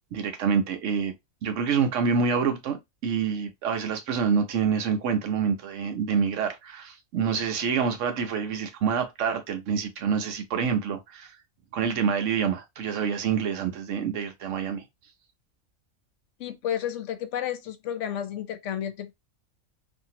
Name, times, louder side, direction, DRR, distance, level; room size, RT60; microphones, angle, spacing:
voice 1, 0.1-1.1 1.4-11.4 11.7-14.9, right 6 dB, 70° right, 1.0 m, -27 dB
voice 2, 16.4-19.1, left 10 dB, 70° left, 0.9 m, -31 dB
2.8 x 2.6 x 2.7 m
omnidirectional pair, 1.4 m